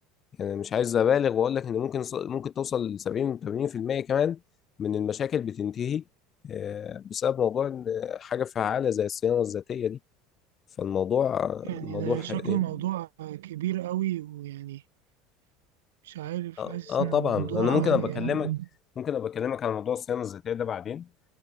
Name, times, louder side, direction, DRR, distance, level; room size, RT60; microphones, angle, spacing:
voice 1, 0.4-4.4 4.8-6.0 6.4-10.0 10.8-12.6 16.6-18.5 19.0-21.1, left 8 dB, 40° left, 4.9 m, -28 dB
voice 2, 11.6-14.8 16.0-18.7, right 14 dB, 85° right, 3.0 m, -32 dB
hypercardioid pair, 90°, 0 cm